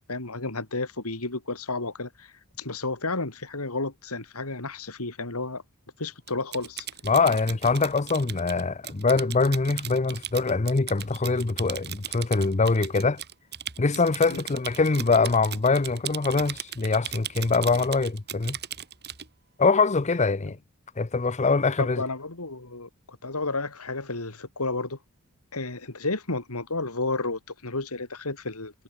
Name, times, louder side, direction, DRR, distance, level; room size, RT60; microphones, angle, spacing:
voice 1, 0.0-5.6 6.0-6.9 14.3-14.4 21.8-25.0 25.5-28.7, left 3 dB, 80° left, 3.5 m, -32 dB
Typing, 6.3-19.3, right 10 dB, 50° right, 4.5 m, -38 dB
voice 2, 7.0-13.2 13.8-18.6 19.6-20.6 21.0-22.0, left 4 dB, 30° left, 0.7 m, -23 dB
head